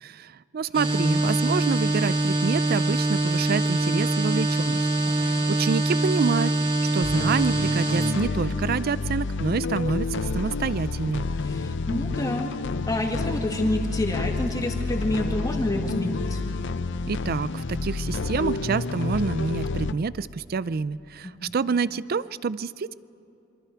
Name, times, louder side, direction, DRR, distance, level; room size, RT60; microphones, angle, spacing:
voice 1, 0.0-4.9 5.2-6.5 6.9-11.3 17.1-22.9, right 5 dB, 50° right, 18 dB, 0.4 m, -27 dB
sound 1, 0.7-8.1, right 2 dB, 25° right, 2.6 m, -24 dB
voice 2, 5.0-5.5 11.4-12.5 12.9-16.4 21.2-21.6, left 1 dB, 20° left, 2 dB, 1.9 m, -28 dB
sound 2, 7.0-19.9, left 3 dB, 60° left, 0.6 m, -29 dB
26.5 x 24.0 x 4.6 m, 2.8 s
head